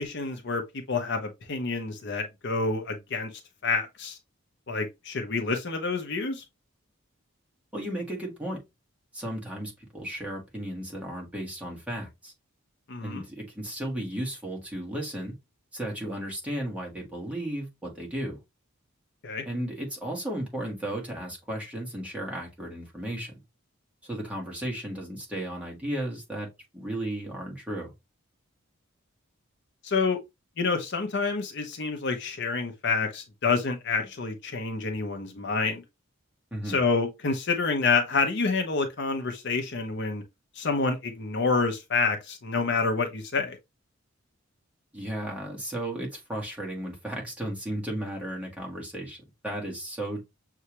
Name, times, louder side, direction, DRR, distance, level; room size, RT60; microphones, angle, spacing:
voice 1, 0.0-3.3 3.6-4.2 4.7-6.4 12.9-13.2 19.2-19.4 29.8-30.2 30.6-35.8 36.6-40.2 40.6-43.6, left 4 dB, 55° left, 0.7 m, -28 dB
voice 2, 7.7-8.6 9.1-12.3 13.0-15.3 15.7-18.4 19.4-23.4 24.0-26.5 26.7-27.9 36.5-36.8 44.9-50.2, right 1 dB, 5° right, 1.3 m, -34 dB
6.5 x 2.4 x 2.9 m
head